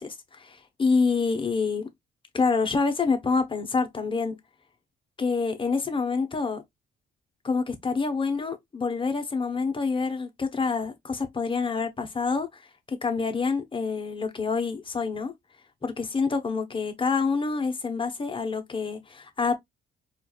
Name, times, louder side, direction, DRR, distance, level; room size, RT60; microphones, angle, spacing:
voice 1, 0.0-1.9 2.3-4.4 5.2-6.6 7.4-15.3 15.8-19.5, left 4 dB, 25° left, 1.0 m, -27 dB
4.4 x 2.5 x 2.4 m
cardioid pair, 90°, 20 cm